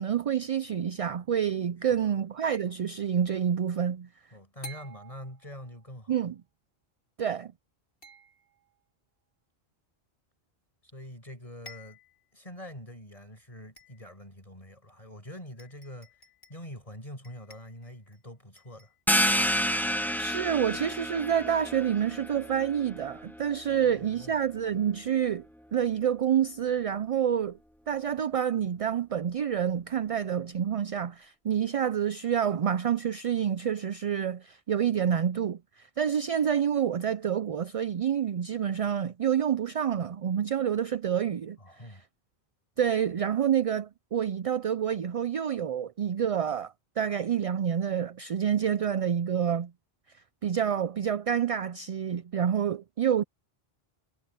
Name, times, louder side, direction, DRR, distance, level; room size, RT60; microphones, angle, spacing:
voice 1, 0.0-4.1 6.1-6.4 7.2-7.5 20.2-25.4 25.7-27.6 27.9-41.6 41.9-42.0 42.8-49.7 50.4-53.2, right 8 dB, 50° right, 0.4 m, -28 dB
sound 1, 1.0-1.5 4.6-5.9 8.0-8.8 10.9-11.0 11.3-11.4 11.7-12.3 12.8-12.9 13.8-14.3 15.1-15.2 15.6-16.7 17.2-18.2 18.6-19.0, equal, 60° left, 6.6 m, -52 dB
voice 2, 4.3-6.1 10.9-12.0 12.3-16.1 16.5-18.9 23.7-24.4 41.6-42.0, equal, 35° left, 7.9 m, -45 dB
sound 2, 19.1-24.4, equal, ahead, 0.9 m, -30 dB
omnidirectional pair, 1.0 m